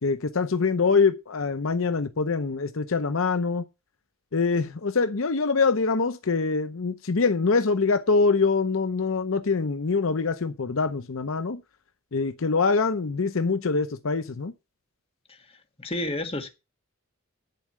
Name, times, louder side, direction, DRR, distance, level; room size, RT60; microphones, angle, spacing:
voice 1, 0.0-3.6 4.3-11.6 12.1-14.5, left 4 dB, 70° left, 0.7 m, -24 dB
voice 2, 15.8-16.5, left 1 dB, 25° left, 1.6 m, -30 dB
10.5 x 4.8 x 7.6 m
head